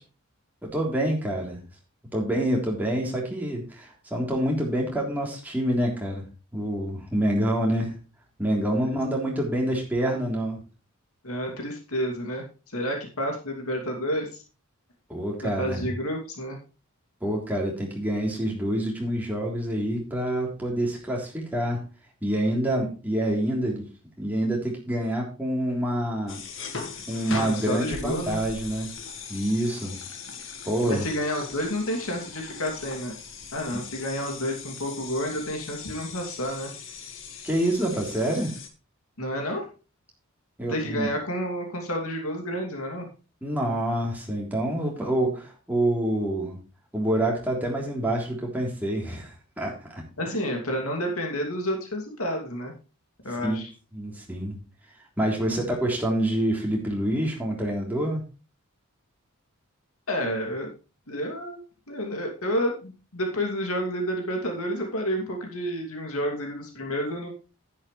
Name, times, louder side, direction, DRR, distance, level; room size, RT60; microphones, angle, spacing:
voice 1, 0.6-1.6 2.1-6.2 6.5-8.0 8.4-10.6 15.1-15.8 17.2-21.8 22.2-23.9 24.2-26.4 27.1-28.9 29.3-30.0 30.6-31.0 37.4-38.5 40.6-41.1 43.4-46.6 46.9-50.4 53.4-53.6 53.9-54.6 55.2-58.2, right 1 dB, 10° right, -2 dB, 3.4 m, -27 dB
voice 2, 11.2-14.4 15.4-16.6 27.5-28.4 30.9-33.1 33.5-36.7 39.2-39.7 40.7-43.1 50.2-52.7 53.2-53.7 55.4-55.7 60.1-60.7 61.1-61.6 61.9-67.3, equal, 75° left, 2 dB, 2.7 m, -30 dB
sound 1, 26.3-38.7, left 5 dB, 55° left, 1.9 m, -39 dB
10.5 x 10.5 x 3.2 m, 0.33 s
head